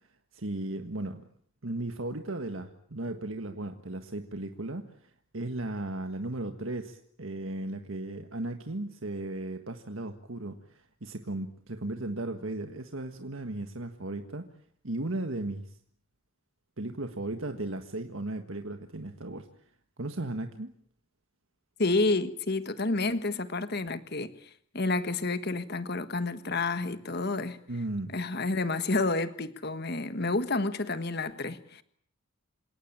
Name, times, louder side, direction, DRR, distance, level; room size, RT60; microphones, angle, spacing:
voice 1, 0.3-1.2 1.6-14.5 14.8-15.7 16.8-19.5 20.0-20.7 27.7-28.1, right 2 dB, 70° right, 1.6 m, -36 dB
voice 2, 21.8-27.6 28.1-31.8, left 3 dB, 50° left, 1.5 m, -30 dB
27.5 x 18.0 x 8.7 m
head